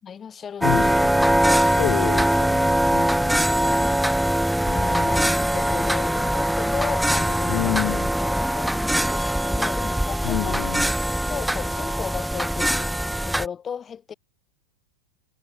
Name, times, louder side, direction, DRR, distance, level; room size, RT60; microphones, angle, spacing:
voice 1, 0.0-1.1 1.3-1.7 3.3-4.0 4.6-10.7 11.3-12.9 13.2-14.1, left 7 dB, 20° left, 5.2 m, -35 dB
voice 2, 0.6-3.3 7.5-8.1 10.2-10.8, left 30 dB, 45° left, 3.9 m, -29 dB
sound 1, 0.6-13.5, right 1 dB, ahead, 1.6 m, -22 dB
figure-of-eight pair, 90°, 0 cm